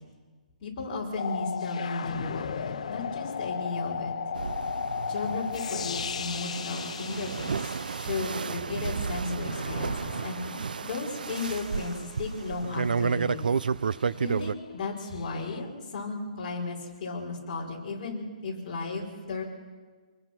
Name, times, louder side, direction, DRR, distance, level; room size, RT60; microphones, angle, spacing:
voice 1, 0.6-4.1 5.1-13.5 14.2-19.4, left 3 dB, 25° left, -3 dB, 5.2 m, -35 dB
sound 1, 1.2-8.7 9.5-12.5 15.2-15.6, left 7 dB, 50° left, 0.8 m, -36 dB
sound 2, 4.3-14.5, right 5 dB, 75° right, 0.6 m, -32 dB
26.5 x 20.5 x 6.1 m, 1.5 s
hypercardioid pair, 175°, 5 cm